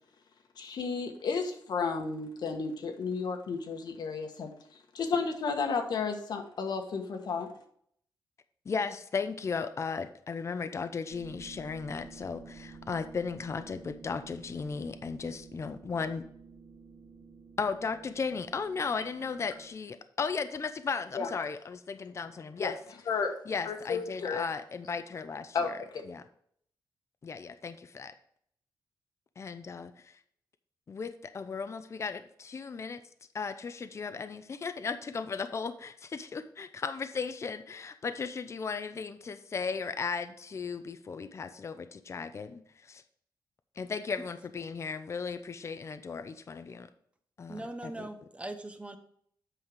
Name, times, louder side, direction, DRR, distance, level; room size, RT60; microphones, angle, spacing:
voice 1, 0.6-4.5 4.9-7.5 21.1-21.3 22.6-22.7 23.1-23.3 23.6-24.5 25.5-26.0, left 5 dB, 65° left, 4 dB, 1.4 m, -32 dB
voice 2, 8.7-16.2 17.6-22.8 23.5-25.8 26.1-26.2 27.2-28.1 29.4-30.2 30.9-33.0 33.3-43.0 43.8-46.9 47.4-48.1, left 5 dB, 40° left, 10 dB, 0.6 m, -36 dB
sound 1, 11.1-19.7, right 4 dB, 40° right, 1.7 m, -51 dB
voice 3, 47.5-49.0, right 2 dB, 15° right, 8 dB, 0.9 m, -40 dB
8.0 x 5.6 x 5.0 m, 0.65 s
cardioid pair, 115°, 8 cm